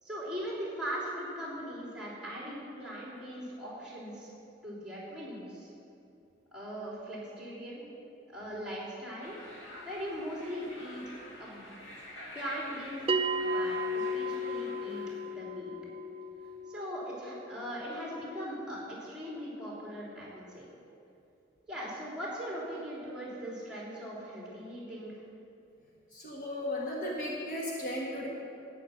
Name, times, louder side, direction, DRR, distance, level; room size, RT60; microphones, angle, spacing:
voice 1, 0.0-4.3 4.6-5.7 6.5-7.8 8.3-9.4 9.8-11.6 12.3-15.0 15.3-15.7 16.7-20.6 21.7-25.2, equal, 5° right, -6 dB, 3.4 m, -40 dB
sound 1, 9.2-15.4, left 1 dB, 85° left, 2.4 m, -48 dB
Bell, 13.1-18.1, equal, 30° right, 0.3 m, -34 dB
voice 2, 26.1-28.3, left 1 dB, 40° left, -4 dB, 1.4 m, -35 dB
12.5 x 9.2 x 5.8 m, 2.6 s
head